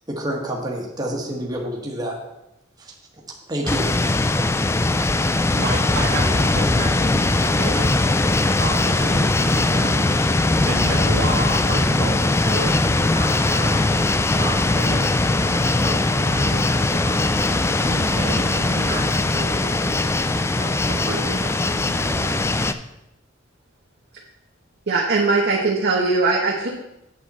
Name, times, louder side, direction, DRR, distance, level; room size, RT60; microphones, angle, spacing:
voice 1, 0.1-2.2 2.8-2.9 3.5-3.9, right 1 dB, 20° right, -1 dB, 1.4 m, -28 dB
sound 1, 3.7-22.7, left 2 dB, 15° left, 0.3 m, -20 dB
voice 2, 5.5-10.3 10.7-22.4, right 2 dB, 75° right, -1 dB, 2.0 m, -33 dB
voice 3, 24.9-26.7, right 3 dB, 55° right, -2 dB, 1.0 m, -20 dB
8.5 x 7.7 x 4.2 m, 0.88 s
head